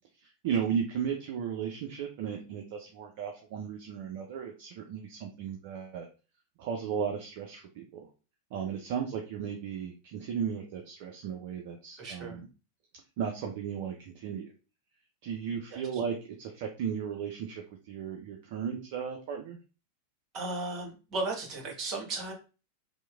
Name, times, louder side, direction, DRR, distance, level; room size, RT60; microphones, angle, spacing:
voice 1, 0.2-6.1 6.6-8.1 8.5-12.5 13.2-14.5 15.2-19.6, right 7 dB, 50° right, 3 dB, 0.4 m, -35 dB
voice 2, 12.0-12.4 15.7-15.8 20.3-22.3, right 2 dB, 35° right, -1 dB, 1.0 m, -35 dB
2.8 x 2.0 x 2.3 m, 0.34 s
figure-of-eight pair, 90°, 0 cm